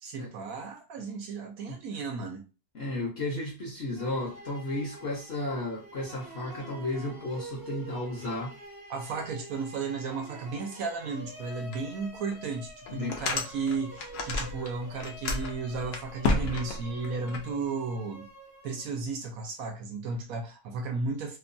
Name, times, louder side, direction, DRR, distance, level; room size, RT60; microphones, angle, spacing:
voice 1, 0.0-2.4 8.9-18.3 18.6-21.4, right 4 dB, 70° right, 1.0 m, -34 dB
voice 2, 2.7-8.6 12.9-13.2, left 2 dB, 50° left, 0.8 m, -33 dB
sound 1, 4.0-19.0, right 1 dB, 20° right, 0.5 m, -47 dB
sound 2, 11.7-11.8 12.3-12.4 12.9-14.7 14.9-17.4, left 3 dB, 80° left, 0.5 m, -30 dB
2.9 x 2.2 x 2.5 m
omnidirectional pair, 1.7 m